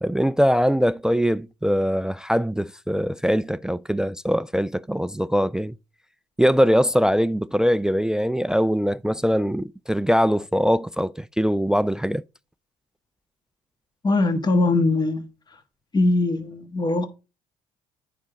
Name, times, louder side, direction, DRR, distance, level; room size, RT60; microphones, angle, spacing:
voice 1, 0.0-5.8 6.4-12.2, equal, 5° right, 0.3 m, -22 dB
voice 2, 14.0-15.2 15.9-17.1, left 2 dB, 30° left, 1.5 m, -21 dB
9.4 x 5.2 x 3.8 m
hypercardioid pair, 55°, 15 cm